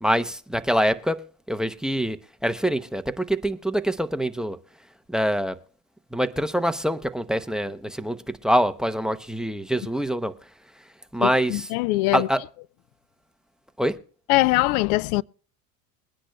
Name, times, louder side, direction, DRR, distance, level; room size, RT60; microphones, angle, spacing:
voice 1, 0.0-2.2 2.4-4.6 5.1-5.6 6.1-10.3 11.1-11.7 12.1-12.4 13.8-14.0, equal, ahead, 0.7 m, -25 dB
voice 2, 11.2-12.3 14.3-15.2, left 19 dB, 75° left, 0.5 m, -22 dB
22.0 x 10.0 x 2.3 m
supercardioid pair, 95°, 44 cm